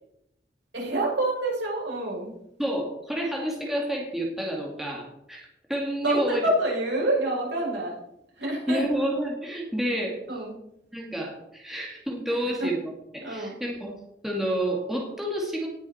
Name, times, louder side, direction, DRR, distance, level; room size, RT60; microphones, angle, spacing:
voice 1, 0.7-2.3 6.0-8.0 8.4-8.8 10.3-10.5 12.6-12.7 13.2-13.6, right 1 dB, 70° right, -3 dB, 5.7 m, -27 dB
voice 2, 2.6-6.4 8.4-10.2 10.9-14.0 14.2-15.7, right 1 dB, ahead, -2 dB, 2.0 m, -29 dB
19.0 x 6.5 x 4.3 m, 0.81 s
head